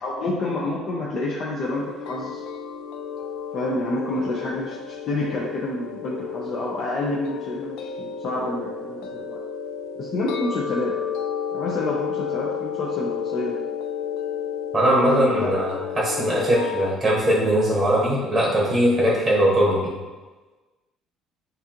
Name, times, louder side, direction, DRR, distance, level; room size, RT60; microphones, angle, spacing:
voice 1, 0.0-2.4 3.5-9.4 10.0-10.9 11.5-13.6 14.8-15.5, left 2 dB, 45° left, -4 dB, 0.6 m, -28 dB
sound 1, 1.6-16.9, left 7 dB, 80° left, 0.3 m, -32 dB
voice 2, 14.7-20.0, right 1 dB, 15° right, -4 dB, 1.0 m, -20 dB
6.7 x 2.6 x 2.9 m, 1.3 s
cardioid pair, 135°, 0 cm